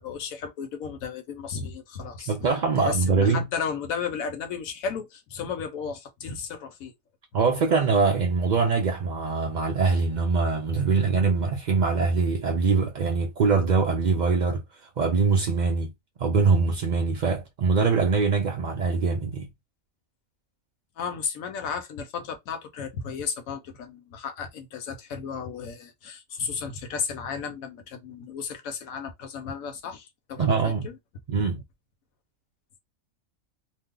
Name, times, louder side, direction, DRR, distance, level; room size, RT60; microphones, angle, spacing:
voice 1, 0.0-2.3 2.8-6.9 21.0-31.0, left 6 dB, 85° left, 1.2 m, -34 dB
voice 2, 2.3-3.5 7.3-14.6 15.0-15.9 16.2-19.5 30.4-30.9 31.3-31.6, right 4 dB, 70° right, 0.4 m, -23 dB
2.7 x 2.0 x 3.6 m
omnidirectional pair, 1.4 m